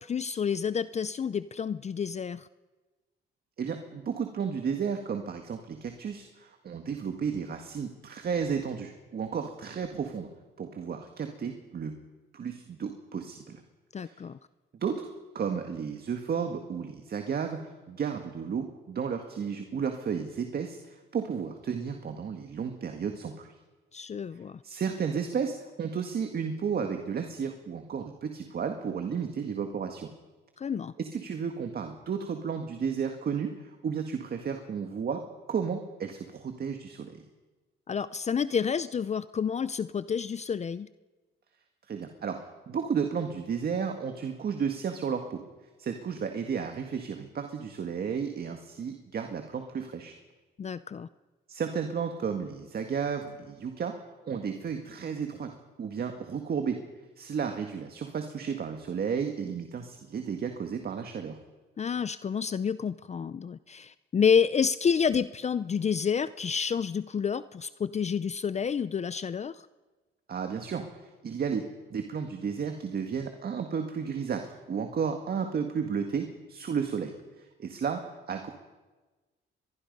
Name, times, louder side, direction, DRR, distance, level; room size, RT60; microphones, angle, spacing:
voice 1, 0.0-2.5 13.9-14.4 23.9-24.6 30.6-30.9 37.9-40.9 50.6-51.1 61.8-69.5, left 7 dB, 35° left, 15 dB, 0.5 m, -29 dB
voice 2, 3.6-10.3 10.6-11.9 12.3-13.6 14.0-14.2 14.8-15.1 15.3-23.5 24.6-30.1 31.0-35.2 35.5-37.2 41.9-45.4 45.8-50.1 51.5-54.0 54.2-55.5 55.8-56.8 57.2-61.4 70.3-70.9 71.2-71.7 71.9-78.5, right 6 dB, 50° right, 5 dB, 1.8 m, -33 dB
23.0 x 21.5 x 5.4 m, 1.2 s
cardioid pair, 90°, 20 cm